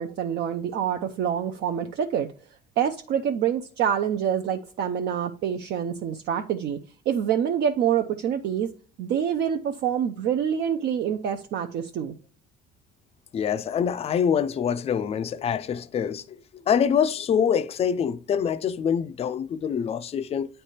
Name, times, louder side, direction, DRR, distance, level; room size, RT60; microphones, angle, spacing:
voice 1, 0.0-2.3 2.8-6.8 7.1-8.7 9.0-12.1, right 8 dB, 60° right, 0.6 m, -26 dB
voice 2, 13.3-16.4 16.7-20.5, left 8 dB, 30° left, 0.4 m, -25 dB
9.0 x 3.3 x 4.2 m
cardioid pair, 125°, 20 cm